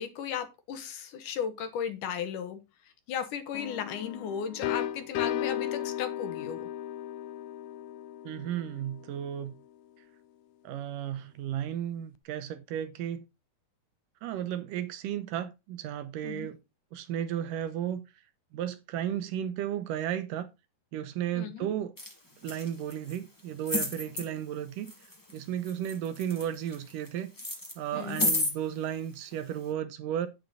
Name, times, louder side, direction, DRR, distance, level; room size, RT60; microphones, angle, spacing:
voice 1, 0.0-2.6 3.1-6.7 16.2-16.5 21.3-21.7 27.9-28.2, left 8 dB, 70° left, 2.5 m, -35 dB
sound 1, 3.5-9.2, left 11 dB, 85° left, 1.7 m, -35 dB
voice 2, 8.2-9.5 10.6-13.2 14.2-16.6 16.9-18.0 18.5-20.5 20.9-21.9 22.4-24.9 25.3-27.3 27.8-30.3, right 10 dB, 75° right, 2.3 m, -34 dB
sound 2, 22.0-22.1 22.4-23.2 23.6-24.2 24.9-25.4 25.6-27.1 27.4-28.5 29.3-29.4, left 1 dB, 10° left, 1.0 m, -31 dB
8.8 x 8.3 x 3.9 m
omnidirectional pair, 4.1 m